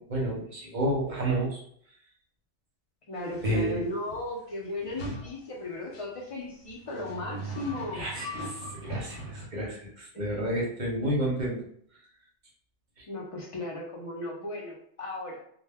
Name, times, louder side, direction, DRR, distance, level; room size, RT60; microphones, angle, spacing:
voice 1, 0.0-1.6 3.4-3.9 7.9-8.2 8.5-8.6 8.8-11.6, right 1 dB, 45° right, -3 dB, 0.7 m, -30 dB
voice 2, 3.1-8.1 10.3-10.4 13.1-15.4, left 2 dB, 40° left, -3 dB, 0.5 m, -36 dB
sound 1, 3.3-3.5 4.1-4.2 4.8-5.3 5.9-6.0 6.7-9.5, right 1 dB, 70° left, 0.9 m, -39 dB
2.1 x 2.1 x 3.3 m, 0.64 s
omnidirectional pair, 1.2 m